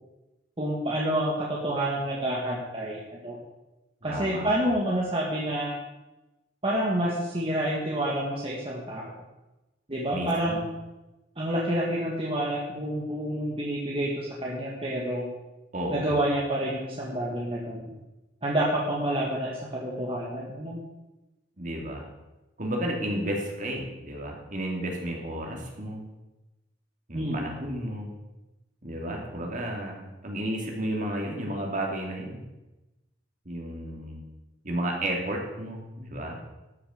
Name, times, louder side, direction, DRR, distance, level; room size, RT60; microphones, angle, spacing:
voice 1, 0.6-3.4 4.0-5.7 6.6-9.1 9.9-10.6 11.4-15.3 15.9-17.9 18.4-20.8 27.1-27.4, right 1 dB, 30° right, -4 dB, 1.8 m, -28 dB
voice 2, 4.0-4.8 10.1-10.6 15.7-16.1 21.6-22.0 22.6-26.0 27.1-28.1 28.8-32.4 33.4-34.2 34.6-36.4, right 1 dB, 45° right, 0 dB, 2.8 m, -32 dB
13.5 x 7.0 x 6.7 m, 1.0 s
head